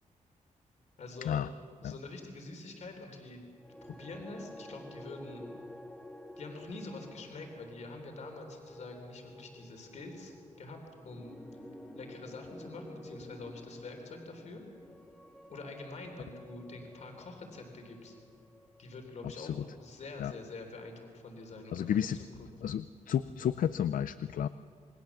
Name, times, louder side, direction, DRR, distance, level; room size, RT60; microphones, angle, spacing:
voice 1, 1.0-1.4 1.8-3.4 3.8-5.4 6.4-10.8 11.0-11.4 12.0-14.6 15.5-18.1 18.8-22.1 22.4-22.5, left 2 dB, 60° left, 4 dB, 3.6 m, -46 dB
sound 1, 3.6-19.9, left 1 dB, 5° left, 1.6 m, -51 dB
voice 2, 21.7-22.2 22.6-24.5, left 9 dB, 85° left, 13 dB, 0.5 m, -31 dB
28.0 x 21.0 x 7.2 m, 2.1 s
wide cardioid pair, 170°, 14 cm